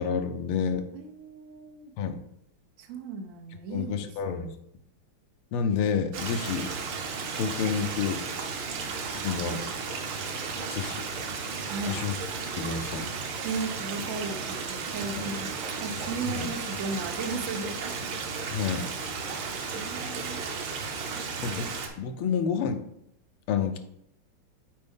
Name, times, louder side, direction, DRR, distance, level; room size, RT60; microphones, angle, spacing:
voice 1, 0.0-0.9 2.0-2.2 3.7-4.5 5.5-6.7 7.4-8.3 9.1-9.6 10.7-11.1 11.9-12.2 12.6-13.1 15.3-15.4 16.4-16.5 18.5-18.9 21.4-21.7 22.0-22.8 23.5-23.8, left 6 dB, 85° left, 8 dB, 1.6 m, -29 dB
voice 2, 0.9-1.9 2.8-4.5 11.7-12.0 13.4-17.9 19.7-20.5 21.1-21.2, right 4 dB, 80° right, 4 dB, 0.6 m, -36 dB
Stream, 6.1-21.9, right 5 dB, 65° right, 1.5 m, -34 dB
8.2 x 4.5 x 3.6 m, 0.75 s
omnidirectional pair, 2.4 m